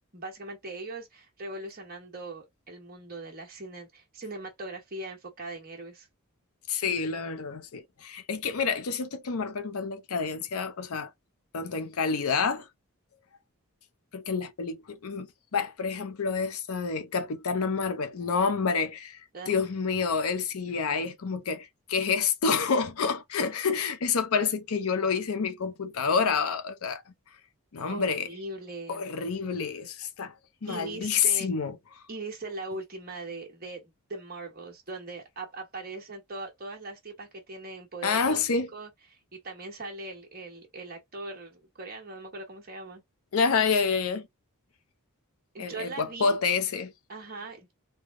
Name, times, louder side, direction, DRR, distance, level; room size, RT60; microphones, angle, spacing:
voice 1, 0.1-6.1 19.3-19.5 27.9-29.0 30.7-31.5 32.1-38.9 39.3-43.0 45.5-46.4 47.1-47.7, right 2 dB, 40° right, 1.2 m, -40 dB
voice 2, 6.7-11.1 11.5-12.7 14.1-15.3 15.5-27.0 27.7-28.3 28.9-30.3 30.6-31.7 38.0-38.7 43.3-44.3 45.6-46.9, left 5 dB, 75° left, 0.6 m, -28 dB
3.3 x 2.1 x 3.6 m
head